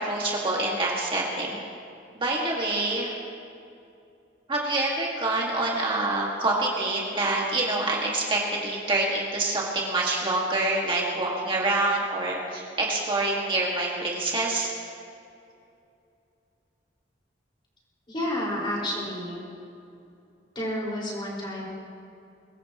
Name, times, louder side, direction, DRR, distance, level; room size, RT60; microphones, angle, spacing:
voice 1, 0.0-1.6 2.2-3.1 4.5-14.7, right 2 dB, 30° right, -4 dB, 2.0 m, -26 dB
voice 2, 18.1-19.4 20.6-21.7, left 1 dB, 30° left, -4 dB, 5.2 m, -30 dB
23.0 x 20.5 x 3.1 m, 2.6 s
head